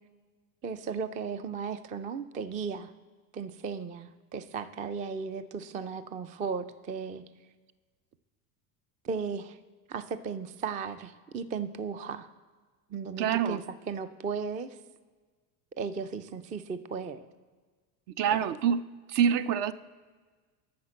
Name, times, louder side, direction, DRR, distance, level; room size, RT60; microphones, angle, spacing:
voice 1, 0.6-2.9 3.3-7.2 9.0-9.6 9.9-12.3 12.9-13.6 13.9-14.8 15.8-17.3 18.3-18.4, right 5 dB, 20° right, 13 dB, 0.3 m, -36 dB
voice 2, 13.2-13.6 18.1-19.7, right 8 dB, 55° right, 14 dB, 0.6 m, -26 dB
9.5 x 5.9 x 7.6 m, 1.4 s
hypercardioid pair, 90°, 49 cm